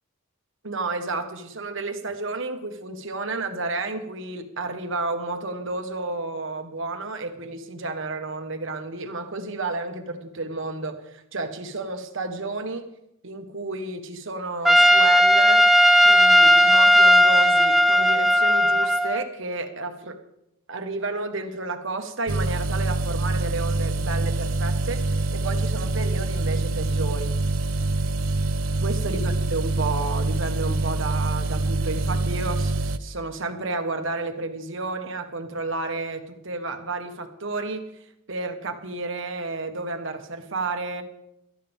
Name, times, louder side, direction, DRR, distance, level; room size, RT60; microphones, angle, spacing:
voice 1, 0.6-12.8 13.2-15.6 16.0-20.2 20.7-27.4 28.8-37.9 38.3-41.0, right 3 dB, 65° right, 6 dB, 1.5 m, -31 dB
Trumpet, 14.6-19.2, equal, ahead, 0.7 m, -16 dB
sound 1, 22.3-33.0, right 2 dB, 85° right, 0.7 m, -25 dB
17.5 x 13.0 x 3.6 m, 0.81 s
head